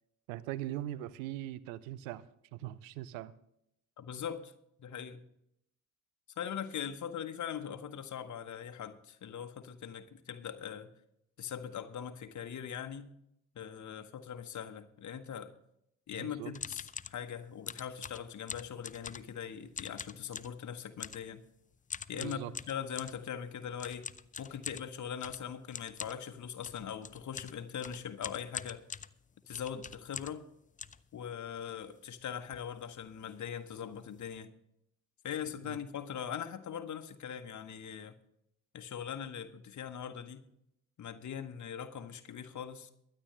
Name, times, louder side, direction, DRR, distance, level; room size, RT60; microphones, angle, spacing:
voice 1, 0.3-2.3 2.5-3.3 16.1-16.5 22.1-22.5 35.6-35.8, right 14 dB, 75° right, 0.7 m, -40 dB
voice 2, 4.0-4.5 4.8-5.2 6.4-10.9 11.4-13.1 13.5-15.5 16.1-21.4 22.1-24.0 24.4-28.8 29.5-30.5 31.1-34.5 35.2-38.1 38.7-40.4 41.0-42.9, left 8 dB, 45° left, 1.3 m, -41 dB
sound 1, 16.5-17.2 17.7-19.4 19.7-20.6 21.0-21.3 21.9-23.2 23.8-30.5 30.8-31.6 32.1-32.2 32.4-32.7 33.0-33.2 33.7-33.8 34.1-34.4, left 6 dB, 20° left, 0.5 m, -44 dB
23.0 x 8.8 x 3.2 m
figure-of-eight pair, 40°, 41 cm